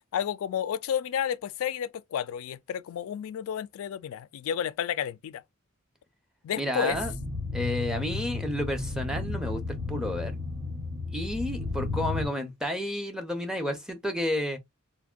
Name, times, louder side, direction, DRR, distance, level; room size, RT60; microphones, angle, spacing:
voice 1, 0.1-5.4 6.4-7.0, left 9 dB, 65° left, 0.3 m, -31 dB
voice 2, 6.6-7.1 7.5-10.3 11.1-14.6, equal, 5° right, 0.5 m, -31 dB
sound 1, 6.9-12.3, left 3 dB, 60° right, 1.0 m, -33 dB
3.4 x 2.1 x 2.2 m
head